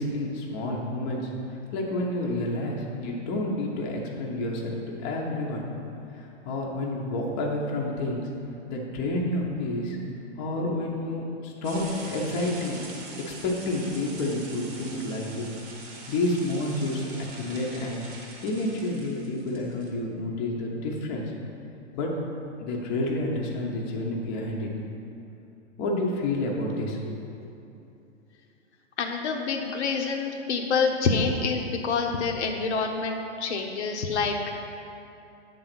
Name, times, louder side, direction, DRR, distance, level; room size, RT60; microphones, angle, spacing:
voice 1, 0.0-4.7 5.0-5.7 6.1-10.0 10.4-12.8 13.3-15.5 15.8-18.0 18.4-21.2 21.9-22.1 22.6-24.7 25.8-27.1 27.4-27.5, left 1 dB, 25° left, -2 dB, 0.8 m, -29 dB
sound 1, 11.6-19.9, right 2 dB, 20° right, 0.9 m, -43 dB
voice 2, 29.0-34.5, left 4 dB, 70° left, 2 dB, 0.9 m, -27 dB
8.4 x 3.9 x 6.0 m, 2.8 s
hypercardioid pair, 155°, 36 cm